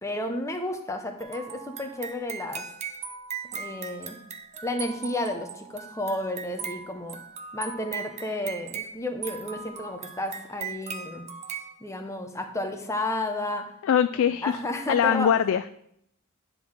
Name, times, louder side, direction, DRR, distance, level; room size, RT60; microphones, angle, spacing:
voice 1, 0.0-2.6 3.5-4.2 4.6-7.2 7.5-11.3 11.8-13.7 14.4-15.3, left 1 dB, 15° left, 4 dB, 0.8 m, -32 dB
sound 1, 1.2-11.7, right 6 dB, 30° right, 0.6 m, -39 dB
voice 2, 13.8-14.5 14.9-15.7, left 8 dB, 65° left, 11 dB, 0.3 m, -22 dB
9.9 x 3.8 x 6.3 m, 0.71 s
head